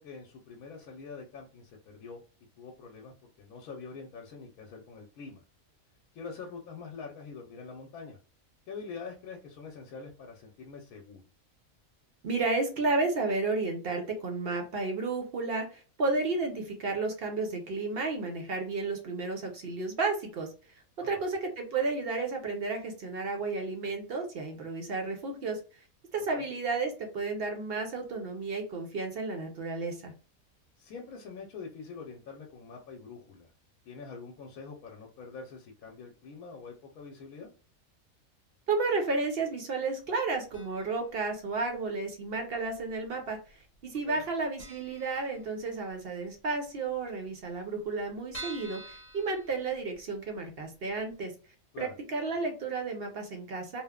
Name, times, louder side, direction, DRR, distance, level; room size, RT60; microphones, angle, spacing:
voice 1, 0.0-2.2 2.6-5.4 6.1-8.2 8.7-11.2 21.0-21.2 26.3-26.5 30.8-33.5 33.8-37.5 44.1-44.2 51.7-51.9, left 5 dB, 90° left, 0 dB, 1.1 m, -45 dB
voice 2, 12.2-20.5 21.0-25.6 26.1-30.1 38.7-43.4 43.8-51.3 51.8-53.8, right 3 dB, 55° right, 3 dB, 0.7 m, -32 dB
sound 1, 40.5-41.1 41.3-41.4 42.4-43.1 43.3-43.5 43.8-43.9 44.2-44.3 44.6-45.9 46.3-46.4 46.6-46.7 46.9-47.0 47.5-50.2 50.6-50.7 51.1-51.2, right 2 dB, 20° left, 1.0 m, -47 dB
3.0 x 2.0 x 2.2 m, 0.36 s
omnidirectional pair, 1.5 m